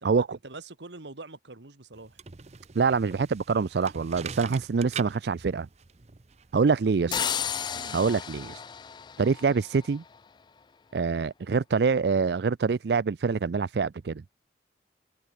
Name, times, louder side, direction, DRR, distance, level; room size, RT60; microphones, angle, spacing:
voice 1, 0.0-2.2 7.0-7.3 7.7-8.0, right 2 dB, 85° right, 1.9 m, -45 dB
sound 1, 1.9-7.4, right 6 dB, 40° right, 0.7 m, -44 dB
voice 2, 2.8-5.7 6.5-7.1 7.9-8.6 9.2-10.0 10.9-14.2, right 5 dB, 70° right, 0.4 m, -25 dB
sound 2, 7.1-10.0, left 8 dB, 25° left, 0.3 m, -33 dB
head